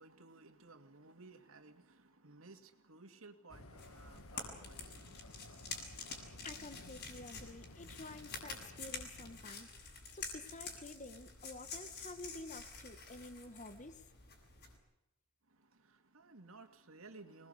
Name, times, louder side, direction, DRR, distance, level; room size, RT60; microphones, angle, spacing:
voice 1, 0.0-5.2 15.6-17.5, right 3 dB, 75° right, 7 dB, 2.5 m, -57 dB
sound 1, 3.5-9.4, left 1 dB, 85° left, 1.8 m, -55 dB
sound 2, 3.8-14.8, left 4 dB, 50° left, 6.8 m, -48 dB
voice 2, 6.1-14.0, left 2 dB, 35° left, 10 dB, 1.7 m, -51 dB
25.5 x 20.5 x 8.2 m, 0.89 s
head